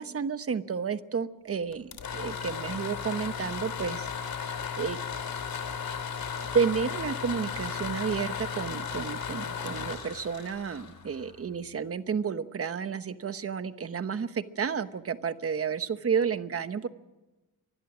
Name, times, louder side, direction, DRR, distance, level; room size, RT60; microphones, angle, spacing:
voice 1, 0.0-4.4 4.8-5.0 6.5-16.9, right 6 dB, 40° right, 11 dB, 1.0 m, -31 dB
sound 1, 1.7-11.5, left 7 dB, 75° left, 3.3 m, -35 dB
25.0 x 20.5 x 6.2 m, 1.1 s
wide cardioid pair, 170°, 34 cm